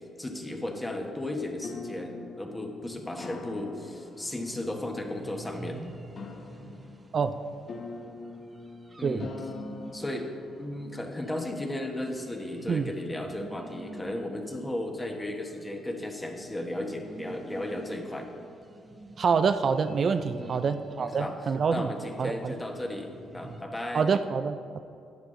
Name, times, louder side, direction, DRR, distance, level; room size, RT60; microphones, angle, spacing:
voice 1, 0.2-5.8 9.0-9.3 9.9-10.3 10.6-18.3 20.4-20.6 21.0-21.3 21.7-24.1, left 1 dB, 15° left, 3 dB, 1.3 m, -35 dB
sound 1, 1.3-11.8, left 3 dB, 50° left, 0.9 m, -44 dB
sound 2, 3.7-23.6, right 2 dB, 25° right, 0.8 m, -48 dB
voice 2, 19.2-21.9 22.2-22.5 23.9-24.8, right 5 dB, 50° right, 10 dB, 0.4 m, -26 dB
10.5 x 8.3 x 3.9 m, 2.6 s
cardioid pair, 90°, 0 cm